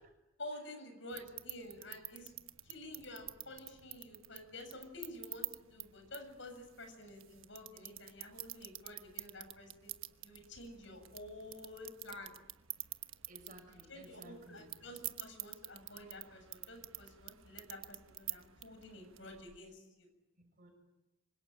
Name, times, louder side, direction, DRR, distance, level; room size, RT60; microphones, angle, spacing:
voice 1, 0.4-2.3 2.6-10.0 10.2-12.4 13.7-20.1, left 1 dB, 65° left, 6 dB, 7.5 m, -50 dB
sound 1, 1.1-19.6, right 15 dB, 80° right, 1.2 m, -49 dB
voice 2, 13.3-14.8 20.4-20.7, right 1 dB, 40° right, 5 dB, 6.9 m, -57 dB
26.5 x 25.0 x 8.8 m, 0.94 s
head